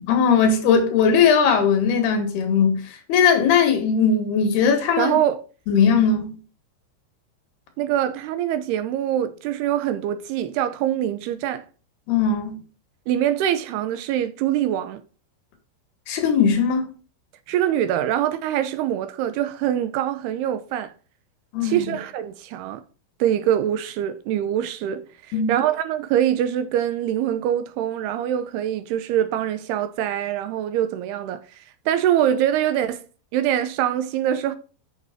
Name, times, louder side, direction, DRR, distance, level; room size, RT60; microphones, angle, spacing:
voice 1, 0.1-2.8 3.1-5.2 5.7-6.3 12.1-12.6 16.1-16.9 21.5-21.8 25.3-25.5, left 6 dB, 70° left, 3.4 m, -19 dB
voice 2, 5.0-5.4 7.8-11.6 13.1-15.0 17.5-20.9 21.6-22.8 23.2-25.1 25.5-31.4 31.9-33.1 33.3-34.6, right 11 dB, 75° right, 2.7 m, -24 dB
8.2 x 6.4 x 5.0 m
omnidirectional pair, 5.0 m